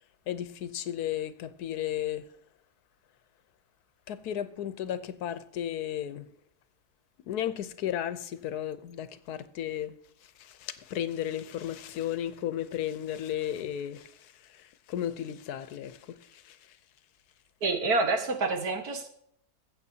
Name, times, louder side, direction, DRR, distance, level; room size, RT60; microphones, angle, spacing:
voice 1, 0.3-2.2 4.1-6.3 7.3-9.9 10.4-14.1 14.9-16.0 16.5-16.6, left 11 dB, 90° left, 1.3 m, -34 dB
voice 2, 17.6-19.1, right 3 dB, 80° right, 1.9 m, -27 dB
15.5 x 7.5 x 2.8 m
omnidirectional pair, 1.6 m